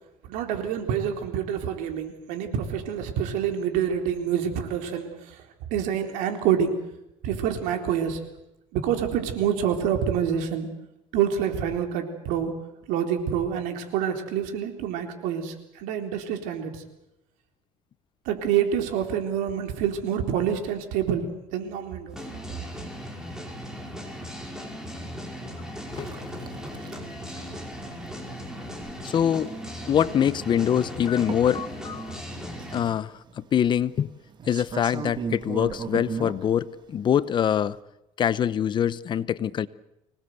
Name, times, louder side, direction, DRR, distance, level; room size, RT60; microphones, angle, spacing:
voice 1, 0.3-5.4 5.7-6.8 7.2-8.2 8.7-10.7 11.1-12.5 12.9-16.8 18.3-22.2, right 8 dB, 85° right, 3.9 m, -27 dB
sound 1, 22.1-32.9, equal, 5° right, 5.1 m, -37 dB
sound 2, 26.0-37.8, right 6 dB, 35° right, 1.7 m, -39 dB
voice 2, 29.0-29.6 29.9-32.2 32.7-34.1 34.5-37.8 38.2-39.7, left 9 dB, 35° left, 0.8 m, -24 dB
25.0 x 19.5 x 8.1 m
cardioid pair, 140°, 13 cm